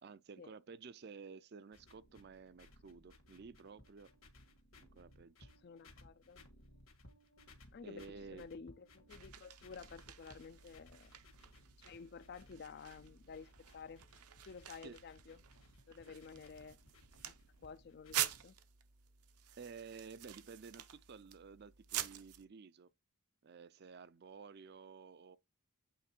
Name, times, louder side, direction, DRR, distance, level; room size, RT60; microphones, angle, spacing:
voice 1, 0.0-4.1 4.8-5.5 7.8-8.5 14.8-15.0 19.6-22.9 23.4-25.4, right 5 dB, 45° right, 0.4 m, -53 dB
sound 1, 1.7-18.4, left 1 dB, 65° left, 1.7 m, -63 dB
voice 2, 5.6-6.4 7.7-8.0 8.3-11.1 11.8-14.0 14.4-15.4 15.9-16.8 17.2-17.3 17.6-18.5, left 5 dB, 45° left, 0.4 m, -52 dB
sound 2, 9.1-22.4, right 11 dB, 85° right, 0.8 m, -47 dB
8.4 x 3.6 x 4.4 m
head